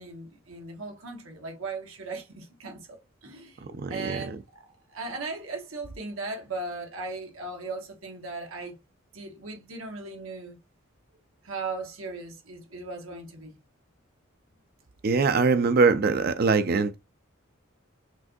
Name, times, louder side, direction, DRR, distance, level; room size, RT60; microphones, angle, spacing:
voice 1, 0.0-3.6 3.9-8.8 9.1-10.6 11.4-13.5, right 3 dB, 90° right, 1.4 m, -37 dB
voice 2, 3.8-4.4 15.0-17.0, right 4 dB, 50° right, 0.4 m, -23 dB
6.0 x 2.6 x 2.4 m
head